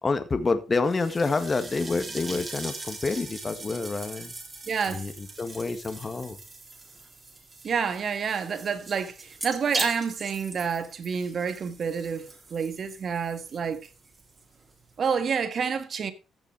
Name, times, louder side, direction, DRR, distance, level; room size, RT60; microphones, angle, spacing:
voice 1, 0.0-4.3 4.9-6.4, left 3 dB, 30° left, 1.7 m, -28 dB
sound 1, 0.8-15.1, right 3 dB, 30° right, 3.9 m, -40 dB
voice 2, 4.7-5.0 7.6-13.9 15.0-16.1, right 6 dB, 50° right, 1.6 m, -29 dB
14.5 x 7.0 x 4.8 m
cardioid pair, 90°, 0 cm